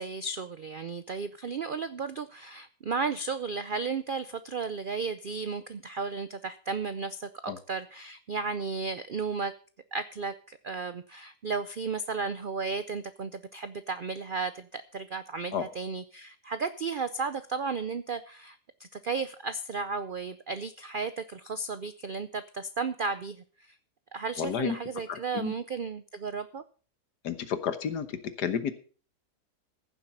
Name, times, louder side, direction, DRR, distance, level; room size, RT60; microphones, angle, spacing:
voice 1, 0.0-9.5 9.9-23.8 24.1-26.6, right 4 dB, 75° right, 12 dB, 0.4 m, -34 dB
voice 2, 24.4-24.8 25.1-25.5 27.2-28.1 28.4-28.7, left 8 dB, 80° left, 11 dB, 1.7 m, -31 dB
15.0 x 7.3 x 5.5 m, 0.41 s
omnidirectional pair, 1.7 m